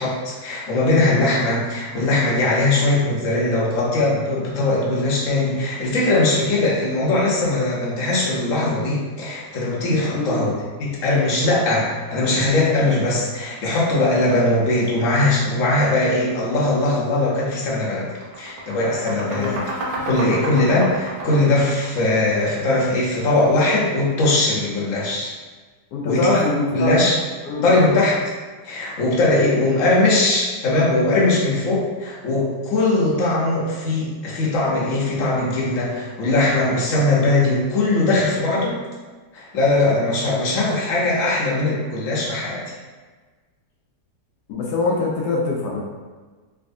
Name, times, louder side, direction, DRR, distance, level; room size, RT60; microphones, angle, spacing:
voice 1, 0.0-10.5 10.8-18.1 18.4-19.6 20.1-25.3 26.0-26.4 26.7-27.1 27.6-28.2 28.6-38.8 39.3-42.6, left 2 dB, 55° left, -5 dB, 1.1 m, -20 dB
voice 2, 10.1-10.5 19.3-19.6 25.9-26.9 27.4-27.7 44.5-45.8, left 3 dB, 80° left, -3 dB, 1.1 m, -23 dB
sound 1, 17.2-17.4 17.8-22.7, right 1 dB, 85° right, 1.3 m, -30 dB
3.3 x 3.1 x 2.6 m, 1.4 s
omnidirectional pair, 1.7 m